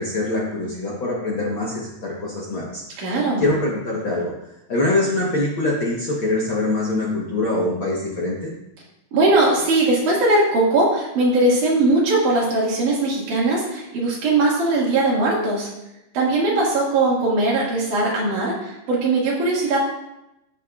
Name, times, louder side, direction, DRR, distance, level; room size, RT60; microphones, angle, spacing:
voice 1, 0.0-2.8 3.4-4.3 4.7-8.5, left 2 dB, 60° left, -4 dB, 1.4 m, -23 dB
voice 2, 3.0-3.5 9.1-15.7 16.1-19.8, right 2 dB, 70° right, -5 dB, 3.5 m, -20 dB
14.5 x 5.8 x 2.4 m, 0.89 s
omnidirectional pair, 3.8 m